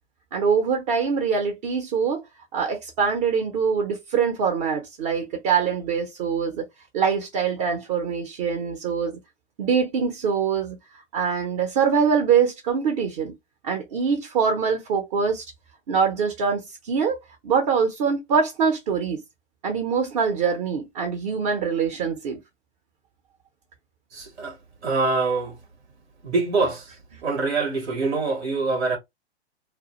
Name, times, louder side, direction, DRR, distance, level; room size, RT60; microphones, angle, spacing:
voice 1, 0.3-2.2 2.5-6.6 6.9-9.2 9.6-10.8 11.1-13.3 13.6-15.4 15.9-17.2 17.4-19.2 19.6-22.4, right 6 dB, 35° right, 0.6 m, -24 dB
voice 2, 24.1-24.6 24.8-25.6 26.2-26.9 27.2-29.0, right 3 dB, 90° right, 1.0 m, -24 dB
2.2 x 2.0 x 2.8 m
hypercardioid pair, 135°, 33 cm